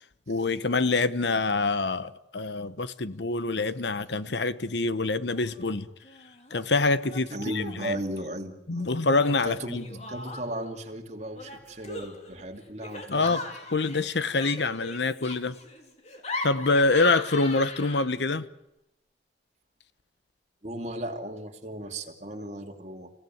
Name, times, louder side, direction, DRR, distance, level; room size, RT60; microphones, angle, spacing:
voice 1, 0.3-5.9 6.5-8.0 8.7-9.8 13.1-13.4 13.7-15.6 16.4-18.5, left 3 dB, 75° left, 1.1 m, -26 dB
Laughter, 5.3-5.7 6.0-6.6 7.0-7.9 9.2-10.7 11.4-18.3, left 2 dB, 40° left, 3.4 m, -40 dB
voice 2, 7.3-8.9 9.4-9.8 10.1-13.4 20.6-23.1, right 1 dB, 40° right, 2.9 m, -36 dB
30.0 x 17.0 x 9.4 m
head